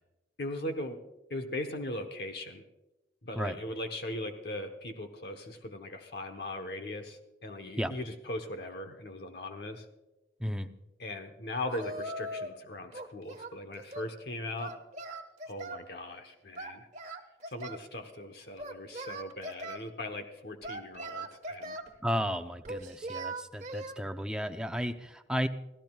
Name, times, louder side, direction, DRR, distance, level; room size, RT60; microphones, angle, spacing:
voice 1, 0.4-1.0 1.3-2.6 3.2-9.8 11.0-14.7 15.4-16.9 17.5-21.8, left 1 dB, 60° left, 5 dB, 1.1 m, -39 dB
Singing, 11.7-12.6 12.9-14.1 14.6-15.9 16.6-17.9 18.6-19.8 20.6-21.9 22.6-24.0, right 2 dB, 40° right, 1.3 m, -40 dB
voice 2, 22.0-25.5, equal, 5° right, 6 dB, 0.6 m, -33 dB
26.0 x 16.0 x 2.4 m, 1.0 s
head